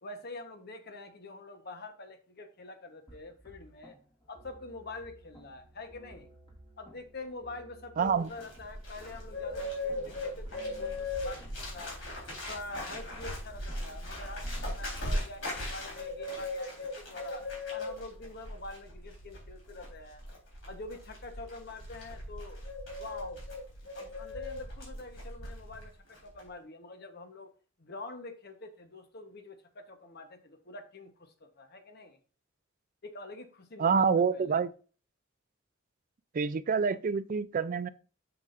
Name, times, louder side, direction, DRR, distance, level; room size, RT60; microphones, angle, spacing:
voice 1, 0.0-4.0 4.3-6.3 6.8-12.0 12.5-20.2 20.7-22.6 23.0-23.4 23.9-27.5 27.8-32.2 33.0-34.6, left 2 dB, 55° left, 1.1 m, -46 dB
sound 1, 3.1-15.2, right 1 dB, 25° left, 2.1 m, -56 dB
voice 2, 8.0-8.3 33.8-34.7 36.3-37.9, right 5 dB, 45° right, 0.4 m, -27 dB
Bird, 8.1-25.9 26.1-26.5, left 1 dB, 75° left, 3.8 m, -39 dB
8.3 x 6.9 x 2.5 m
head